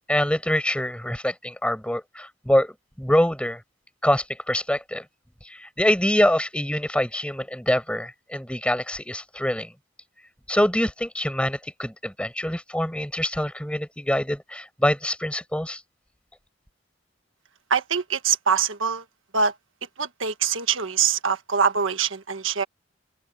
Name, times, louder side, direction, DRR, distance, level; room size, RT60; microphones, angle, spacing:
voice 1, 0.1-3.6 4.0-5.0 5.5-9.7 10.5-15.8, left 1 dB, 5° left, 7.0 m, -25 dB
voice 2, 17.7-19.0 19.3-19.5 20.0-22.6, right 6 dB, 80° right, 1.5 m, -24 dB
open air
head